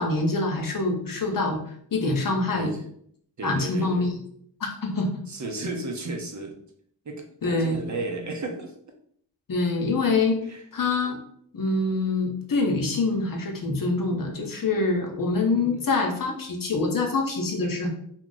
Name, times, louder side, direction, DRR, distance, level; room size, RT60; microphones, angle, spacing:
voice 1, 0.0-1.6 1.9-2.7 3.4-4.1 4.6-5.1 7.4-7.8 9.5-10.4 10.7-11.2 11.5-17.9, left 3 dB, 45° left, 2 dB, 0.8 m, -25 dB
voice 2, 2.5-2.8 3.4-4.1 5.3-6.6 7.1-8.7 10.4-10.6 15.6-15.8, right 2 dB, 35° right, 2 dB, 0.7 m, -34 dB
2.3 x 2.1 x 3.8 m, 0.65 s
supercardioid pair, 40°, 48 cm